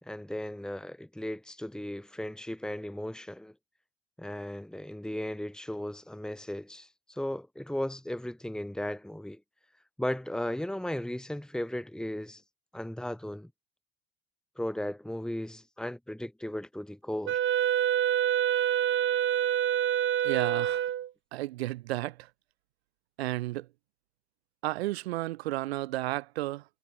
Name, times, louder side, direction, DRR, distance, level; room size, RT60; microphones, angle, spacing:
voice 1, 0.0-3.5 4.2-9.4 10.0-12.4 12.7-13.5 14.6-17.4, left 1 dB, ahead, 2.6 m, -36 dB
Wind instrument woodwind instrument, 17.2-21.1, right 10 dB, 40° right, 1.5 m, -26 dB
voice 2, 20.2-20.9 21.3-22.2 23.2-23.7 24.6-26.6, right 17 dB, 80° right, 1.3 m, -32 dB
hypercardioid pair, 75°, 31 cm